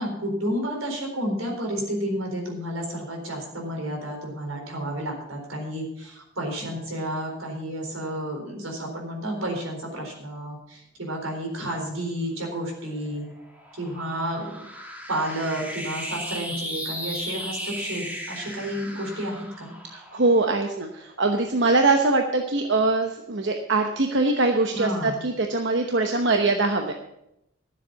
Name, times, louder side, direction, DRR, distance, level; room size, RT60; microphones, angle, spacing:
voice 1, 0.0-13.3 13.8-14.6 15.1-19.7 24.7-25.2, equal, 80° right, 1 dB, 4.2 m, -31 dB
sound 1, 12.7-21.3, equal, 10° right, 1.5 m, -37 dB
voice 2, 19.9-26.9, right 3 dB, 55° right, 4 dB, 0.9 m, -22 dB
13.0 x 7.5 x 6.9 m, 0.83 s
head